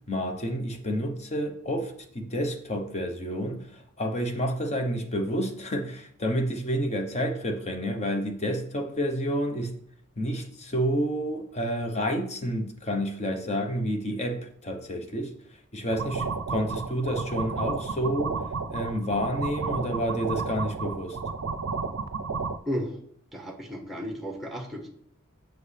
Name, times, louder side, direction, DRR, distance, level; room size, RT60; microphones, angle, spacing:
voice 1, 0.1-9.7 10.2-15.3 15.7-18.4 18.7-21.2, equal, 30° left, 0.9 m, -29 dB
sound 1, 15.9-22.6, right 4 dB, 65° right, 0.5 m, -32 dB
voice 2, 22.7-23.0 23.3-24.9, equal, ahead, 1.2 m, -33 dB
7.7 x 6.0 x 3.3 m
head